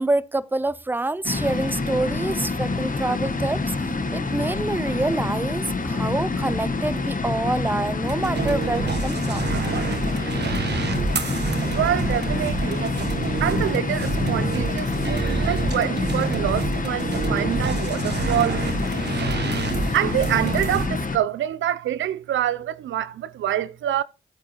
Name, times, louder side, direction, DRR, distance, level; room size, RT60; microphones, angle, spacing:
voice 1, 0.0-9.5, right 2 dB, 10° right, 0.5 m, -27 dB
sound 1, 1.2-21.2, left 3 dB, 40° left, 1.1 m, -27 dB
sound 2, 8.0-20.9, right 4 dB, 60° right, 1.1 m, -28 dB
voice 2, 11.7-13.0 13.4-18.6 19.9-24.0, right 11 dB, 75° right, 0.4 m, -26 dB
13.0 x 8.2 x 2.9 m
supercardioid pair, 40°, 20 cm